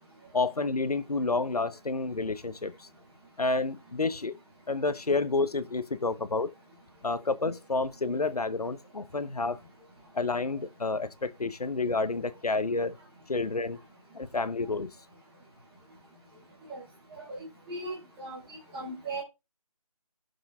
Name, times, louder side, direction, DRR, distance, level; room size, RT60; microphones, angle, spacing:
voice 1, 0.3-2.9 3.4-4.4 4.7-6.5 7.0-9.6 10.1-13.0 13.3-13.8 14.1-14.9, left 3 dB, 80° left, 1.0 m, -29 dB
voice 2, 17.7-18.4 18.7-19.2, right 2 dB, 5° right, 0.7 m, -37 dB
18.0 x 7.0 x 2.4 m
figure-of-eight pair, 170°, 19 cm